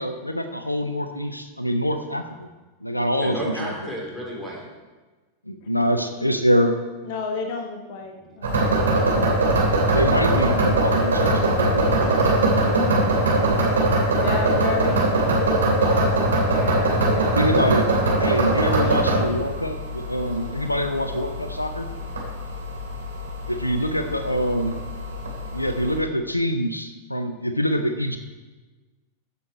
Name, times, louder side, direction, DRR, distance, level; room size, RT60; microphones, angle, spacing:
voice 1, 0.0-2.5 2.8-3.9 5.5-6.7 9.9-11.9 13.5-13.9 17.3-17.9 18.2-21.9 23.5-24.8 25.5-28.2, equal, 85° left, 8 dB, 0.7 m, -25 dB
voice 2, 3.2-4.6 11.9-12.6 18.8-19.3, right 1 dB, 5° right, -5 dB, 3.8 m, -33 dB
voice 3, 7.0-9.4 12.8-13.1 14.2-16.2 16.5-17.4, left 3 dB, 50° left, 3 dB, 1.3 m, -32 dB
sound 1, 8.4-26.0, right 2 dB, 70° right, 2.7 m, -22 dB
15.0 x 7.0 x 4.5 m, 1.3 s
figure-of-eight pair, 90°, 0 cm